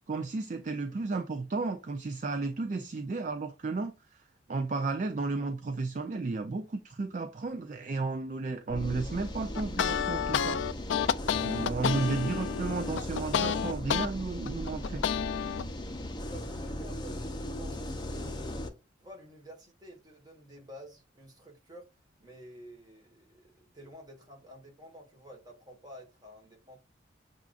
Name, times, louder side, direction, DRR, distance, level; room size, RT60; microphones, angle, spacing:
voice 1, 0.1-10.6 11.3-15.0, right 3 dB, 40° right, 0.3 m, -33 dB
sound 1, 8.7-18.7, left 1 dB, 20° left, 0.6 m, -37 dB
sound 2, 9.5-14.1 14.5-15.6, left 8 dB, 65° left, 0.3 m, -30 dB
voice 2, 10.9-12.1 16.0-18.6 19.0-21.9 22.2-26.8, equal, 20° right, 1.3 m, -51 dB
6.9 x 2.4 x 2.4 m
head